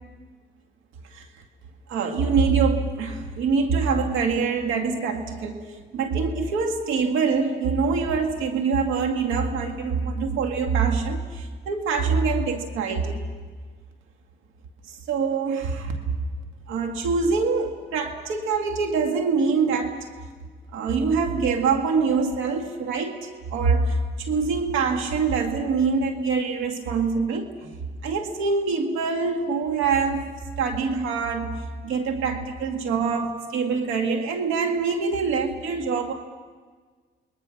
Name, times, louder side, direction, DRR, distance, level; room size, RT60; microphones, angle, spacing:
voice 1, 1.9-5.6 5.9-13.2 14.9-16.0 16.7-20.0 20.7-27.7 28.0-30.3 30.6-31.5 31.8-36.1, right 5 dB, 90° right, 4 dB, 2.0 m, -24 dB
28.5 x 22.0 x 6.0 m, 1.5 s
cardioid pair, 90°, 20 cm